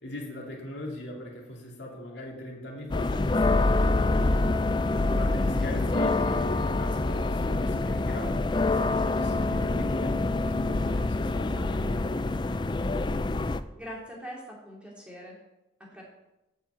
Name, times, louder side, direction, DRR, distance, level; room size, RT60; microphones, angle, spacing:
voice 1, 0.0-4.4 4.9-12.7, equal, 70° left, -1 dB, 2.6 m, -40 dB
sound 1, 2.9-13.6, left 2 dB, 25° left, 0.3 m, -26 dB
voice 2, 13.7-15.4 15.9-16.0, equal, 5° right, -4 dB, 2.6 m, -42 dB
9.4 x 5.7 x 8.2 m, 0.95 s
head